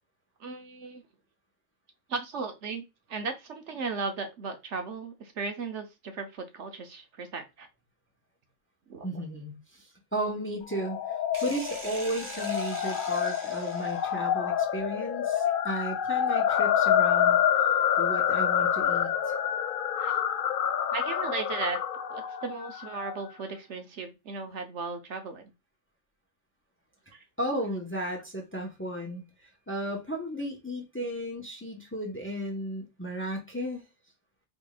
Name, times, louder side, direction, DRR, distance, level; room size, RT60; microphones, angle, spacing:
voice 1, 0.4-1.0 2.1-7.7 8.9-9.2 20.0-20.2 20.9-21.8 22.1-25.5 27.1-27.2, right 4 dB, 60° right, 1.1 m, -36 dB
voice 2, 9.0-17.4 18.0-19.3 27.4-33.8, right 1 dB, 10° left, 0.9 m, -34 dB
sound 1, 10.7-23.2, left 9 dB, 70° left, 0.4 m, -27 dB
sound 2, 11.3-14.3, right 2 dB, 20° right, 1.4 m, -42 dB
5.1 x 3.6 x 2.4 m
omnidirectional pair, 1.4 m